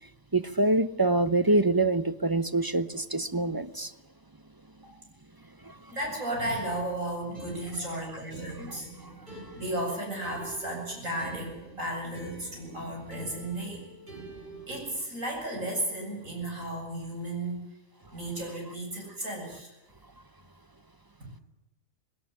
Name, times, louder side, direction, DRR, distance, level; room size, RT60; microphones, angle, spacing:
voice 1, 0.3-3.9 5.6-5.7 8.7-8.8 9.0-9.1, right 2 dB, 20° right, 13 dB, 0.8 m, -25 dB
voice 2, 5.9-8.9 9.3-13.9 14.7-17.7 18.1-19.7 21.2-21.3, right 1 dB, 75° right, 1 dB, 8.6 m, -34 dB
sound 1, 7.3-15.0, right 2 dB, 35° right, 8.0 m, -45 dB
20.0 x 18.0 x 9.8 m, 0.97 s
omnidirectional pair, 1.4 m